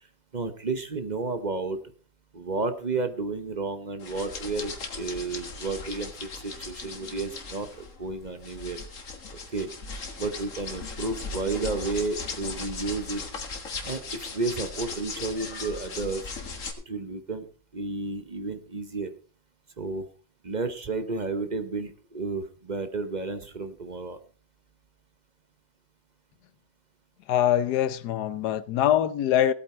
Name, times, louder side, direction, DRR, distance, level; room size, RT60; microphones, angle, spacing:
voice 1, 0.3-1.8 2.3-8.8 9.5-9.7 10.2-13.2 13.8-16.2 16.9-17.5 17.7-19.1 19.8-20.0 20.4-24.2, right 3 dB, 35° right, 0.9 m, -32 dB
sound 1, 4.0-16.7, left 4 dB, 55° left, 2.0 m, -38 dB
voice 2, 27.3-29.5, left 11 dB, 85° left, 1.3 m, -23 dB
17.5 x 8.6 x 4.3 m
omnidirectional pair, 1.7 m